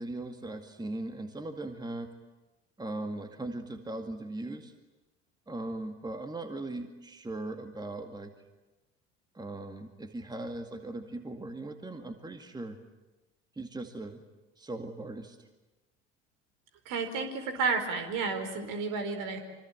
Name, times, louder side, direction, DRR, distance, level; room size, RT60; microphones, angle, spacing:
voice 1, 0.0-2.1 2.8-4.7 5.5-8.3 9.3-12.8 13.6-14.2 14.6-15.4, right 2 dB, 10° right, 7 dB, 2.1 m, -39 dB
voice 2, 16.9-19.4, right 4 dB, 55° right, 7 dB, 4.6 m, -31 dB
26.0 x 25.0 x 9.1 m, 1.1 s
figure-of-eight pair, 70°, 37 cm